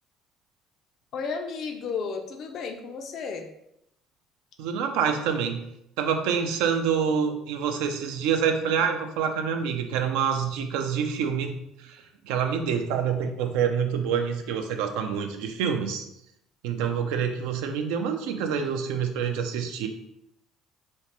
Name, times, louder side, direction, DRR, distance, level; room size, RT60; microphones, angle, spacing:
voice 1, 1.1-3.5, left 5 dB, 60° left, 4 dB, 0.3 m, -33 dB
voice 2, 4.6-5.6 6.0-11.6 11.8-12.0 12.2-16.1 16.6-19.9, right 7 dB, 85° right, 6 dB, 0.3 m, -26 dB
3.2 x 2.0 x 2.9 m, 0.82 s
supercardioid pair, 85°, 0 cm